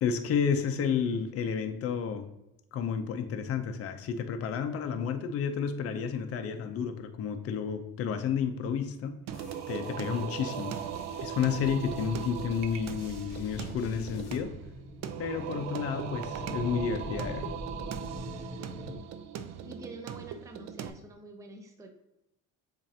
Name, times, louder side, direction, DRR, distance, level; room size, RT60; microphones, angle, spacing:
voice 1, 0.0-2.2 2.7-9.2 9.7-10.8 11.2-14.5 15.2-17.5, left 7 dB, 45° left, 7 dB, 0.5 m, -31 dB
sound 1, 9.3-14.4, left 3 dB, 80° left, 1.0 m, -51 dB
Singing, 9.3-20.9, right 9 dB, 60° right, 0.5 m, -39 dB
sound 2, 11.0-19.0, left 1 dB, 5° left, 0.9 m, -43 dB
voice 2, 19.6-21.9, right 3 dB, 10° right, 3 dB, 0.5 m, -47 dB
7.2 x 2.6 x 2.8 m, 0.88 s
cardioid pair, 120°, 32 cm